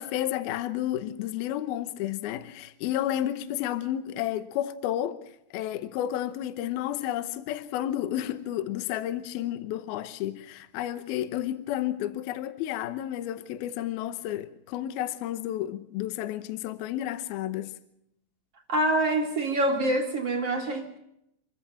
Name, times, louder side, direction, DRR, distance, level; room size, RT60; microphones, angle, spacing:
voice 1, 0.0-17.8, left 12 dB, 75° left, 2.7 m, -31 dB
voice 2, 18.7-21.0, right 1 dB, 40° right, 2.9 m, -26 dB
27.5 x 14.5 x 7.2 m
omnidirectional pair, 4.7 m